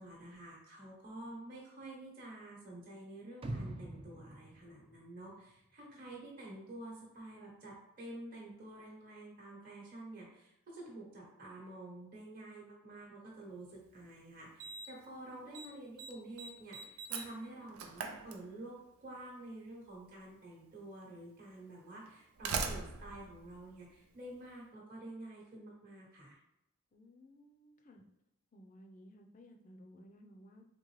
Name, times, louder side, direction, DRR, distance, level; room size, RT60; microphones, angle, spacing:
voice 1, 0.0-26.4, right 1 dB, 40° right, -4 dB, 0.9 m, -49 dB
sound 1, 3.4-5.6 5.9-6.0, right 1 dB, 25° right, 0.4 m, -44 dB
Slam, 13.8-13.9 14.6-15.1 15.3-15.7 16.0-18.9 20.0-20.1 21.0-21.1 22.0-24.4, right 5 dB, 85° right, 0.5 m, -41 dB
voice 2, 26.9-28.0 28.5-30.6, equal, 35° left, 3 dB, 0.5 m, -57 dB
3.7 x 3.6 x 3.1 m, 0.88 s
head